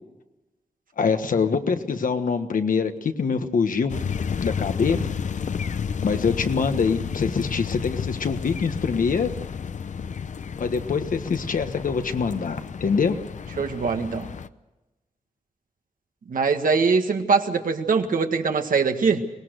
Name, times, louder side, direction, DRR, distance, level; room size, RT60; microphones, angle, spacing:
voice 1, 1.0-4.0 4.4-5.0 6.0-9.3 10.6-13.2, left 5 dB, 80° left, 8 dB, 1.5 m, -24 dB
sound 1, 3.9-14.5, left 6 dB, 65° left, 0.7 m, -31 dB
voice 2, 13.6-14.3 16.3-19.2, right 5 dB, 85° right, 5 dB, 1.9 m, -22 dB
23.5 x 19.5 x 6.5 m, 1.0 s
wide cardioid pair, 115°, 14 cm